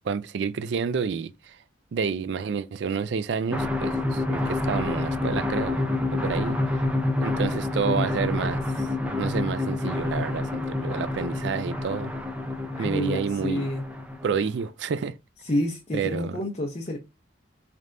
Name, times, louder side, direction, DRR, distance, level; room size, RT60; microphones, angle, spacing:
voice 1, 0.0-1.6 1.9-6.8 7.2-8.9 9.2-12.1 12.8-13.6 14.2-15.1 15.9-16.4, right 6 dB, 65° right, 0.3 m, -29 dB
sound 1, 3.5-14.7, left 2 dB, 5° right, 0.5 m, -28 dB
voice 2, 12.8-13.8 15.4-17.0, left 1 dB, 35° left, 0.6 m, -29 dB
4.2 x 3.3 x 2.5 m
head